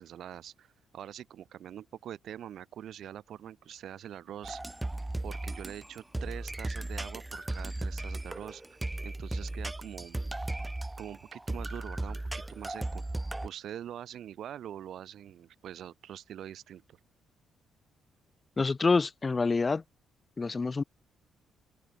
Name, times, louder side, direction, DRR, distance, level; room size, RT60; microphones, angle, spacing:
voice 1, 0.0-4.6 5.2-10.3 11.0-13.0 13.4-17.0, right 10 dB, 70° right, 3.6 m, -44 dB
sound 1, 4.4-13.5, right 2 dB, 15° right, 0.3 m, -36 dB
voice 2, 18.6-19.8 20.4-20.8, left 4 dB, 30° left, 0.6 m, -27 dB
open air
cardioid pair, 90°, 0 cm